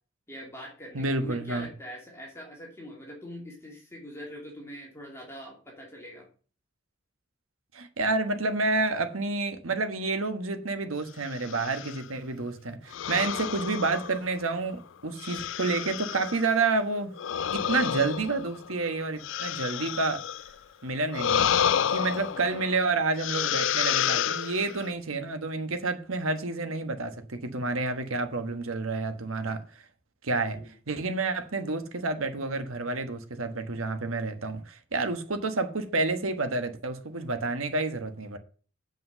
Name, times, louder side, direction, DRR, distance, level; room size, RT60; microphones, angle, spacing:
voice 1, 0.3-6.3 22.3-22.7 30.5-30.7, equal, 15° left, 2.8 m, -43 dB
voice 2, 0.9-1.7 7.7-17.1 17.5-20.2 20.8-21.5 21.9-29.6 30.2-30.6 30.9-38.4, right 3 dB, 90° right, 1.2 m, -29 dB
sound 1, 11.3-12.0 12.9-14.6 15.2-16.5 17.2-20.5 21.1-22.8 23.2-24.9, left 9 dB, 65° left, 0.4 m, -30 dB
7.6 x 5.4 x 6.7 m
head